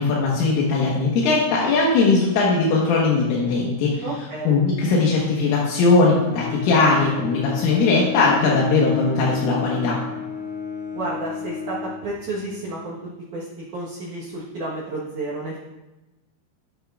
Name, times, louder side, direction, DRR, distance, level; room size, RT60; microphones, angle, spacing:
voice 1, 0.0-4.1 4.5-10.0, left 3 dB, 85° left, -4 dB, 3.9 m, -19 dB
voice 2, 4.0-4.5 10.9-13.0 13.3-13.5 13.7-15.6, right 2 dB, 80° right, -6 dB, 1.7 m, -31 dB
Bowed string instrument, 6.0-12.7, left 7 dB, 65° left, 1.7 m, -33 dB
12.0 x 10.5 x 2.5 m, 1.0 s
omnidirectional pair, 5.6 m